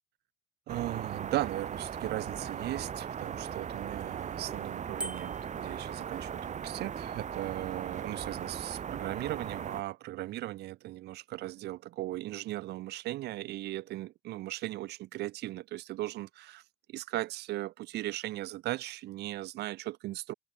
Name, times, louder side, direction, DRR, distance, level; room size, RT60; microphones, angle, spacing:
sound 1, 0.7-9.8, right 8 dB, 45° right, 5.9 m, -38 dB
voice 1, 0.7-16.6 16.9-20.3, right 16 dB, 75° right, 2.7 m, -37 dB
Bicycle bell, 5.0-5.6, right 1 dB, 5° right, 1.3 m, -40 dB
open air
cardioid pair, 110°, 17 cm